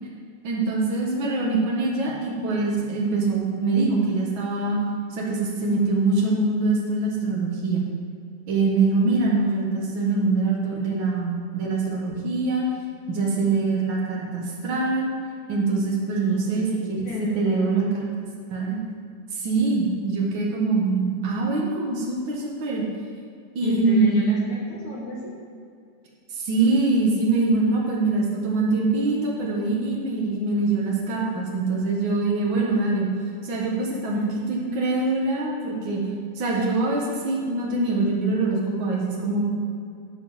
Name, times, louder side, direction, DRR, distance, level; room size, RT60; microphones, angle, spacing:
voice 1, 0.4-4.8 5.1-7.8 8.5-12.7 13.1-15.1 15.5-17.1 17.3-18.0 18.5-18.8 19.3-22.8 23.5-24.2 26.3-33.1 33.4-34.2 34.5-36.0 36.3-39.5, right 3 dB, 70° right, -3 dB, 1.1 m, -24 dB
voice 2, 16.1-17.7 23.6-25.4 33.9-34.3, left 2 dB, 60° left, -4 dB, 2.5 m, -32 dB
11.0 x 4.7 x 7.4 m, 2.4 s
omnidirectional pair, 4.5 m